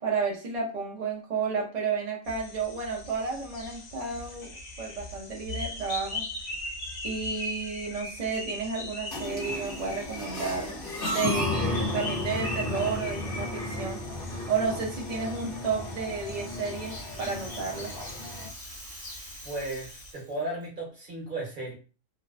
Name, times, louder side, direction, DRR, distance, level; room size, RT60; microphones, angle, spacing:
voice 1, 0.0-4.5 4.8-6.3 7.0-14.0 14.5-17.9, right 5 dB, 55° right, -1 dB, 0.4 m, -32 dB
sound 1, 2.2-20.1, left 2 dB, 70° left, 0.9 m, -40 dB
sound 2, 9.1-18.5, left 1 dB, 50° left, 1.0 m, -34 dB
Rattle (instrument), 15.9-20.6, right 1 dB, 15° right, 0.8 m, -47 dB
voice 2, 19.4-21.7, right 2 dB, 40° right, -3 dB, 1.1 m, -35 dB
2.6 x 2.1 x 2.4 m, 0.35 s
omnidirectional pair, 1.4 m